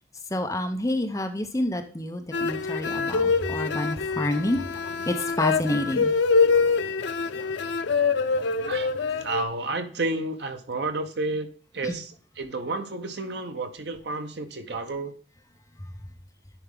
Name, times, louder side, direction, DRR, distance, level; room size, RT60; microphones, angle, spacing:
voice 1, 0.3-4.6 5.1-6.1 11.8-12.0 15.8-15.9, left 1 dB, 15° left, 6 dB, 0.7 m, -28 dB
sound 1, 2.3-9.4, left 4 dB, 85° left, 0.6 m, -25 dB
voice 2, 9.2-11.5 11.7-12.1 12.4-15.1, right 2 dB, 70° right, 7 dB, 1.0 m, -31 dB
10.0 x 4.6 x 3.7 m, 0.42 s
head